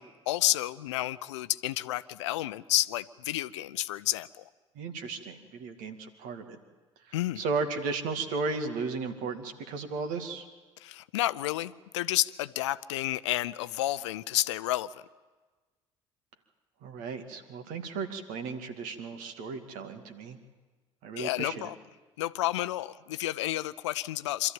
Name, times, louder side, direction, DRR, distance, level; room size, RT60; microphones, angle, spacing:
voice 1, 0.0-4.4 7.1-7.4 10.8-14.9 21.2-21.7 22.2-24.5, left 15 dB, 75° left, 15 dB, 0.6 m, -30 dB
voice 2, 4.8-6.6 7.1-10.5 16.8-20.4 21.0-21.7, right 4 dB, 60° right, 6 dB, 2.3 m, -35 dB
26.0 x 13.5 x 8.8 m, 1.3 s
figure-of-eight pair, 60°, 15 cm